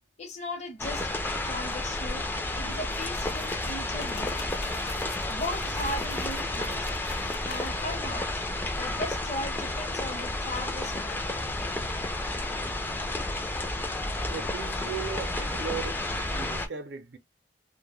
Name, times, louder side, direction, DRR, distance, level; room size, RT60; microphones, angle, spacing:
voice 1, 0.2-1.2 1.4-4.4 5.3-6.9 7.4-8.4 8.8-11.2, left 1 dB, 40° left, 0.8 m, -37 dB
sound 1, 0.8-16.7, left 2 dB, 10° left, 0.3 m, -31 dB
sound 2, 2.9-8.0, left 5 dB, 70° left, 0.5 m, -46 dB
voice 2, 14.3-16.0 16.3-17.2, right 6 dB, 80° right, 0.6 m, -37 dB
2.2 x 2.1 x 3.0 m
head